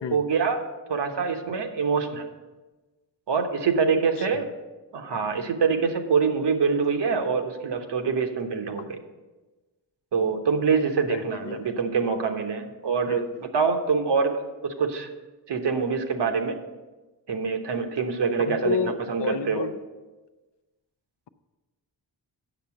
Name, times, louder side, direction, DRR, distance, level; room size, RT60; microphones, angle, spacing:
voice 1, 0.1-0.6 0.9-2.3 3.3-4.5 4.9-9.0 10.1-15.1 15.5-16.6 17.3-19.7, right 5 dB, 70° right, 6 dB, 1.1 m, -25 dB
voice 2, 11.0-11.7 13.1-13.4 18.4-19.8, left 7 dB, 70° left, 12 dB, 0.6 m, -32 dB
8.2 x 6.5 x 5.9 m, 1.2 s
wide cardioid pair, 90°, 43 cm